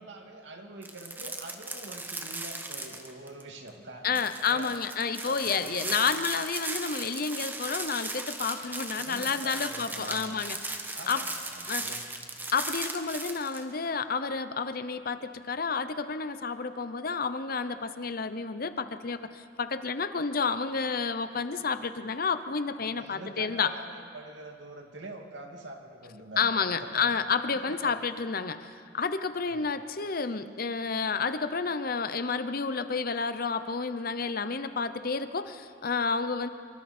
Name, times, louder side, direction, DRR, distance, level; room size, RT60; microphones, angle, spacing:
voice 1, 0.0-4.8 5.2-6.1 9.0-10.4 10.9-12.1 22.9-27.1 27.7-28.0 29.4-29.7, right 2 dB, 80° right, 2 dB, 2.4 m, -45 dB
sound 1, 0.8-3.4 3.7-3.8 4.1-13.6, right 2 dB, 10° right, 1.2 m, -37 dB
voice 2, 4.0-10.6 11.1-11.2 11.7-11.9 12.5-23.7 26.4-36.5, left 5 dB, 55° left, 11 dB, 0.8 m, -30 dB
25.0 x 24.0 x 4.4 m, 2.3 s
head